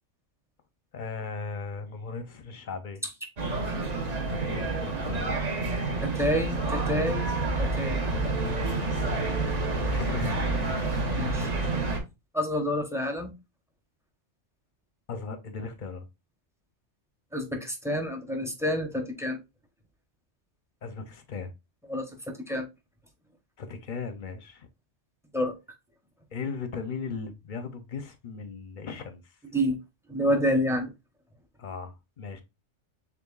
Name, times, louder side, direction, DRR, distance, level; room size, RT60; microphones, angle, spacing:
voice 1, 0.9-3.0 4.3-5.3 9.9-10.7 15.1-16.1 20.8-21.5 23.6-24.7 26.3-29.4 31.6-32.4, left 4 dB, 55° left, 0.6 m, -37 dB
sound 1, 3.4-12.0, right 2 dB, 40° right, 0.9 m, -28 dB
voice 2, 6.0-8.0 11.1-11.5 12.3-13.3 17.3-19.4 21.9-22.0 22.5-22.7 25.3-25.5 29.5-29.8 30.1-30.9, equal, 5° right, 0.5 m, -28 dB
6.7 x 2.5 x 2.3 m
omnidirectional pair, 1.2 m